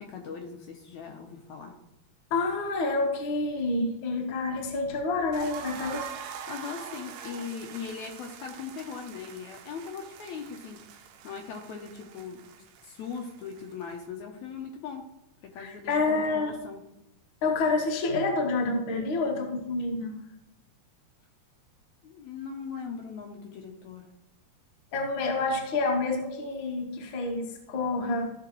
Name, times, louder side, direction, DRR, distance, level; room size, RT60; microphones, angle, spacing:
voice 1, 0.0-1.7 6.5-10.8 11.2-12.5 12.8-15.0 15.4-16.8 22.0-24.1, left 6 dB, 70° left, 2 dB, 2.0 m, -39 dB
voice 2, 2.3-6.1 15.6-16.6 17.4-20.1 24.9-28.3, left 3 dB, 50° left, 1 dB, 1.5 m, -28 dB
sound 1, 5.3-14.1, right 8 dB, 85° right, 2.3 m, -44 dB
14.5 x 5.8 x 3.0 m, 0.86 s
omnidirectional pair, 3.7 m